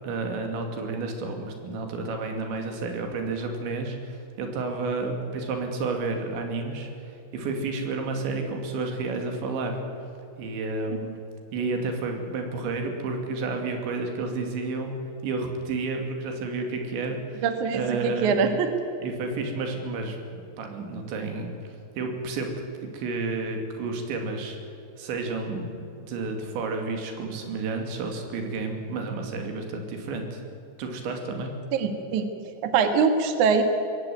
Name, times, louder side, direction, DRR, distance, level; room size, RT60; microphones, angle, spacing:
voice 1, 0.0-9.8 10.4-11.2 11.5-15.0 15.2-17.5 17.7-18.4 19.0-22.5 22.9-24.6 25.0-30.4 30.8-31.5, right 3 dB, 85° right, 4 dB, 4.8 m, -31 dB
voice 2, 17.4-18.7 31.7-32.3 32.6-33.6, right 5 dB, 55° right, 7 dB, 2.5 m, -23 dB
21.0 x 16.5 x 9.3 m, 2.8 s
omnidirectional pair, 5.1 m